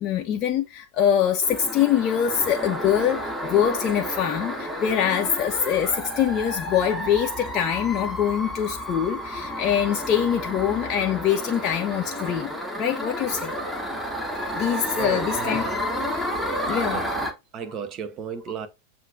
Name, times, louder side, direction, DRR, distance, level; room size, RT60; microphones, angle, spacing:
voice 1, 0.0-13.5 14.5-15.6 16.4-17.0, left 9 dB, 35° left, 0.4 m, -24 dB
sound 1, 1.4-17.3, equal, ahead, 0.9 m, -31 dB
voice 2, 15.0-15.8 16.7-17.2 17.5-18.7, right 6 dB, 35° right, 0.6 m, -34 dB
7.3 x 2.5 x 2.5 m
figure-of-eight pair, 90°, 0 cm